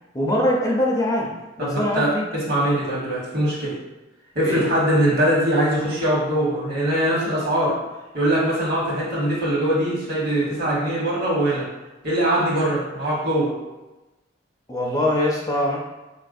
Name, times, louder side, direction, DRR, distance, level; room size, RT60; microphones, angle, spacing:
voice 1, 0.1-1.3 1.6-2.3 4.4-4.6 14.7-15.8, left 1 dB, 20° left, -2 dB, 0.4 m, -22 dB
voice 2, 1.6-2.1 2.5-3.8 4.3-7.8 8.1-11.7 12.0-13.6, right 1 dB, 55° right, -6 dB, 1.2 m, -22 dB
3.6 x 2.4 x 2.6 m, 1.1 s
head